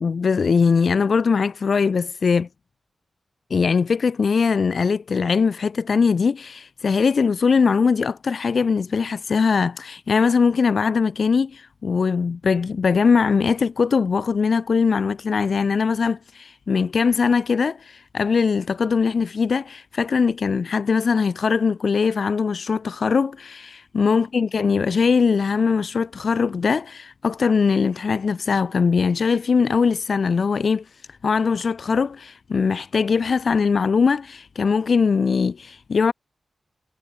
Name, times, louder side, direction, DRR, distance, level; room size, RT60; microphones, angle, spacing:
voice 1, 0.0-2.5 3.5-30.8 31.2-36.1, left 5 dB, 65° left, 0.3 m, -21 dB
wide cardioid pair, 80°, 0 cm